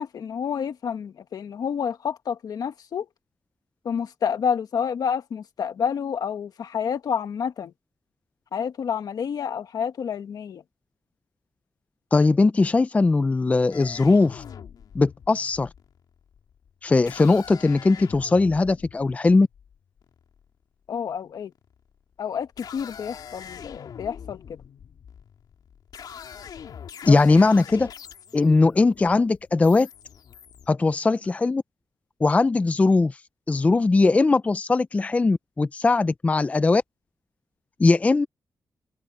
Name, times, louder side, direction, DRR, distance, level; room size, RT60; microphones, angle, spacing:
voice 1, 0.0-3.1 3.8-7.7 8.5-10.6 20.9-21.5 22.2-24.6 27.0-27.2, left 7 dB, 75° left, 1.4 m, -29 dB
voice 2, 12.1-14.4 14.9-15.7 16.8-19.5 27.1-27.9 28.3-29.9 30.7-31.6 32.2-33.2 33.5-36.8 37.8-38.3, left 3 dB, 20° left, 0.4 m, -20 dB
sound 1, 13.7-20.5 21.5-22.0 22.4-30.7, left 8 dB, 90° left, 3.2 m, -43 dB
open air
wide cardioid pair, 160°, 7 cm